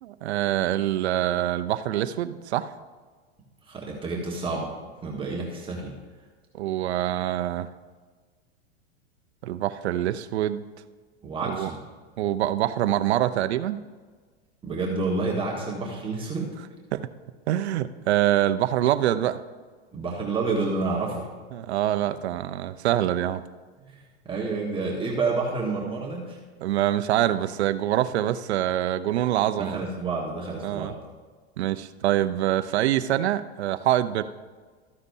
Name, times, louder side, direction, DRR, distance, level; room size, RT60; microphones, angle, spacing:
voice 1, 0.0-2.7 6.5-7.7 9.4-10.6 11.5-11.7 12.2-13.8 16.9-17.1 17.5-19.4 21.5-23.4 26.6-29.8 30.6-30.9 31.6-34.2, right 12 dB, 85° right, 12 dB, 0.7 m, -25 dB
voice 2, 3.7-4.7 5.0-5.9 11.2-11.8 14.6-16.5 19.9-21.3 23.9-24.0 24.2-26.4 29.6-31.0, right 3 dB, 15° right, -3 dB, 1.5 m, -29 dB
13.5 x 9.7 x 2.7 m, 1.4 s
supercardioid pair, 130°, 32 cm